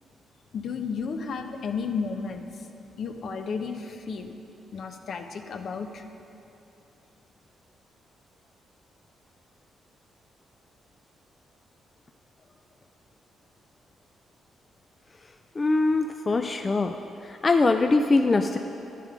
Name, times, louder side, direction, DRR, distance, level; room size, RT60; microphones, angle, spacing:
voice 1, 0.5-4.4 4.7-6.0, left 5 dB, 65° left, 6 dB, 0.8 m, -33 dB
voice 2, 15.6-16.9 17.3-18.6, left 3 dB, 35° left, 6 dB, 0.4 m, -22 dB
11.0 x 9.5 x 5.1 m, 3.0 s
cardioid pair, 85°, 0 cm